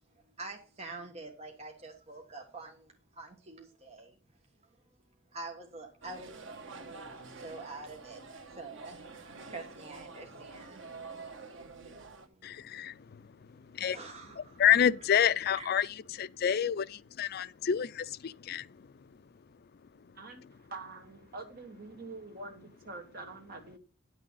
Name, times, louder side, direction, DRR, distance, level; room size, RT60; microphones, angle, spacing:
voice 1, 0.4-4.2 5.3-6.3 7.4-8.2 8.5-10.9 11.6-11.7 12.3-12.5 13.9-14.8 15.5-15.7, right 3 dB, 35° right, 1.3 m, -46 dB
sound 1, 6.0-12.3, right 3 dB, 85° right, 1.2 m, -47 dB
voice 2, 12.4-13.0 13.7-14.0 14.6-18.7, left 9 dB, 55° left, 0.4 m, -28 dB
voice 3, 20.1-23.8, right 3 dB, 50° right, 2.2 m, -45 dB
10.0 x 6.3 x 5.5 m
head